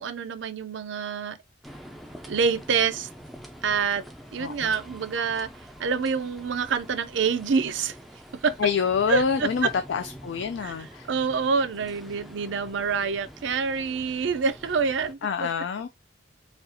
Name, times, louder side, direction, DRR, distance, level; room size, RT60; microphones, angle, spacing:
voice 1, 0.0-1.4 2.3-3.1 3.6-4.0 4.3-5.5 5.8-7.9 8.4-8.5 9.1-9.7 10.6-10.7 11.0-15.5, right 5 dB, 70° right, 0.5 m, -26 dB
sound 1, 1.6-15.1, equal, ahead, 0.4 m, -46 dB
voice 2, 4.4-4.7 8.6-11.1 15.2-15.9, left 6 dB, 70° left, 0.4 m, -27 dB
4.2 x 2.4 x 2.6 m
head